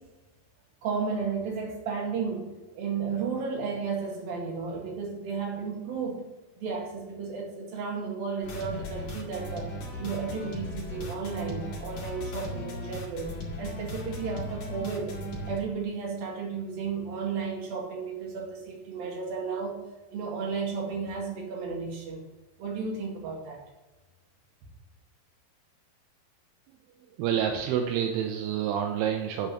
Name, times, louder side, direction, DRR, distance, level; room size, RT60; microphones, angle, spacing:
voice 1, 0.8-2.5 2.7-6.2 6.6-9.7 10.0-13.3 13.6-15.2 15.5-19.8 20.1-22.2 22.6-23.6, right 5 dB, 65° right, -1 dB, 3.7 m, -33 dB
sound 1, 8.4-15.6, equal, 45° left, 3.0 m, -37 dB
voice 2, 27.0-29.5, right 9 dB, 85° right, 3 dB, 2.8 m, -28 dB
8.7 x 5.1 x 7.6 m, 1.1 s
omnidirectional pair, 4.5 m